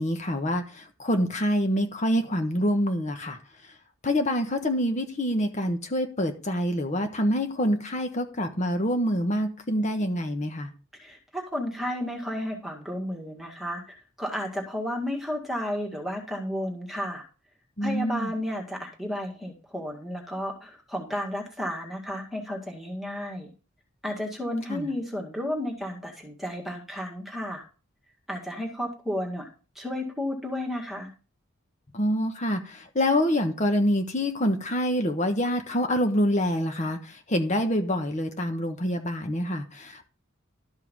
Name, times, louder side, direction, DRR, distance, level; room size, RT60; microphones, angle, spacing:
voice 1, 0.0-3.4 4.0-10.7 17.8-18.3 24.7-24.9 31.9-40.1, equal, 35° left, 1.2 m, -26 dB
voice 2, 10.9-17.2 17.8-23.5 24.0-27.6 28.3-29.5 29.8-31.1, left 1 dB, ahead, 2.0 m, -32 dB
12.5 x 5.6 x 5.5 m
head